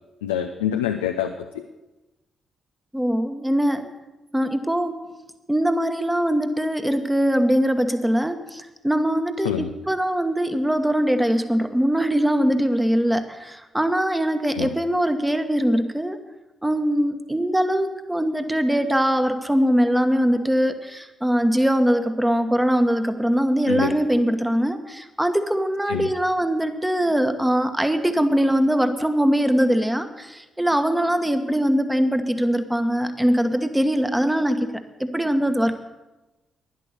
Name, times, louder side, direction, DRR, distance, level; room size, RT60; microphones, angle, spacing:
voice 1, 0.2-1.6 9.4-9.7 14.5-14.7 23.7-23.9 25.9-26.1, left 10 dB, 80° left, 5 dB, 0.5 m, -26 dB
voice 2, 2.9-3.9 4.3-5.0 5.5-16.2 16.6-35.8, equal, 10° right, 8 dB, 1.3 m, -22 dB
11.0 x 10.5 x 6.7 m, 1.1 s
figure-of-eight pair, 40°, 0 cm